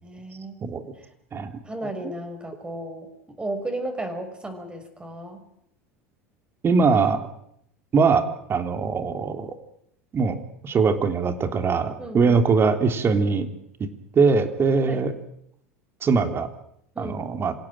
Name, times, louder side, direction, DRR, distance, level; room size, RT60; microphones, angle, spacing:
voice 1, 0.0-1.1 1.6-5.4 12.0-12.4 14.9-15.1 16.9-17.2, right 1 dB, 15° right, 5 dB, 6.3 m, -34 dB
voice 2, 6.6-7.2 7.9-9.5 10.1-10.4 10.6-13.5 13.8-13.9 14.1-15.1 16.0-16.5 17.0-17.5, right 4 dB, 30° right, 7 dB, 3.5 m, -21 dB
27.0 x 17.5 x 9.1 m, 0.74 s
hypercardioid pair, 80°, 7 cm